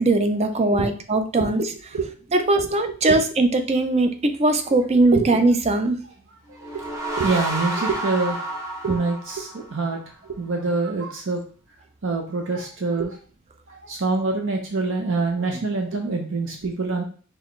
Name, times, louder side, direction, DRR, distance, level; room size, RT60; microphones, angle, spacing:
voice 1, 0.0-1.7 2.3-6.0, right 2 dB, 30° right, 7 dB, 0.5 m, -20 dB
sound 1, 6.5-10.0, right 2 dB, 15° right, 0.9 m, -30 dB
voice 2, 6.5-6.8 7.2-8.4 8.8-11.4 12.0-13.2 13.7-17.0, right 3 dB, 60° right, 2 dB, 0.7 m, -25 dB
4.5 x 3.3 x 3.1 m, 0.40 s
head